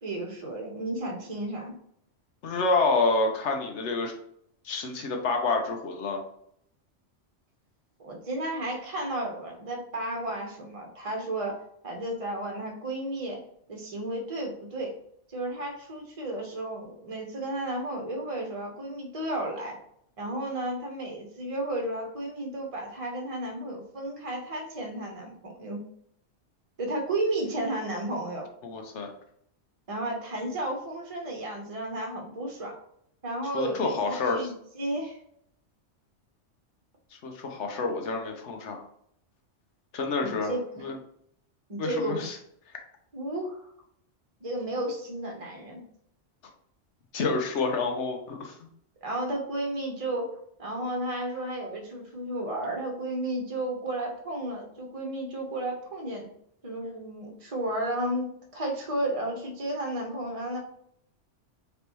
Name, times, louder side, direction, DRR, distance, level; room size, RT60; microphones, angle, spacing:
voice 1, 0.0-1.8 8.0-11.5 11.8-13.4 13.7-14.9 15.3-19.8 20.2-25.8 26.8-28.5 29.9-32.7 33.2-35.2 40.2-40.9 41.7-42.3 43.1-43.7 44.4-45.8 49.0-56.3 56.6-60.6, right 1 dB, 30° right, 1 dB, 1.0 m, -33 dB
voice 2, 2.4-4.1 4.6-6.2 28.6-29.1 33.5-34.5 37.2-38.8 39.9-40.5 40.8-41.0 41.8-42.3 47.1-48.5, left 3 dB, 70° left, 3 dB, 1.1 m, -28 dB
4.0 x 3.4 x 3.0 m, 0.69 s
omnidirectional pair, 1.3 m